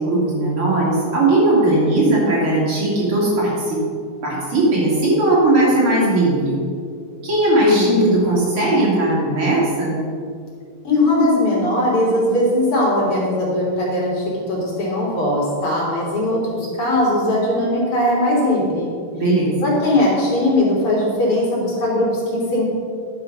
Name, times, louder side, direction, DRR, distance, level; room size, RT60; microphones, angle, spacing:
voice 1, 0.0-3.8 4.2-6.6 7.2-10.0 19.1-19.7, right 1 dB, 70° right, -5 dB, 3.7 m, -18 dB
voice 2, 7.6-7.9 10.8-18.9 19.6-22.7, left 1 dB, 85° left, -5 dB, 3.6 m, -19 dB
10.5 x 5.7 x 6.0 m, 2.3 s
omnidirectional pair, 2.4 m